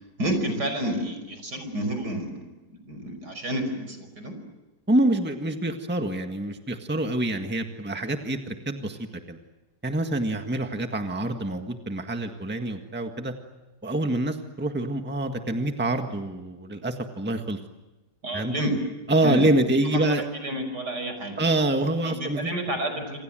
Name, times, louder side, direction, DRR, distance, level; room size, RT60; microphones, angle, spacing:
voice 1, 0.2-2.3 2.7-4.3 18.2-18.7 19.2-21.4 22.0-23.2, right 1 dB, 75° right, 8 dB, 6.0 m, -30 dB
voice 2, 4.9-9.4 9.8-13.3 13.8-17.6 18.3-18.5 19.1-20.2 21.4-22.5, right 1 dB, 5° right, 5 dB, 1.6 m, -26 dB
27.5 x 27.0 x 7.7 m, 1.1 s
omnidirectional pair, 1.8 m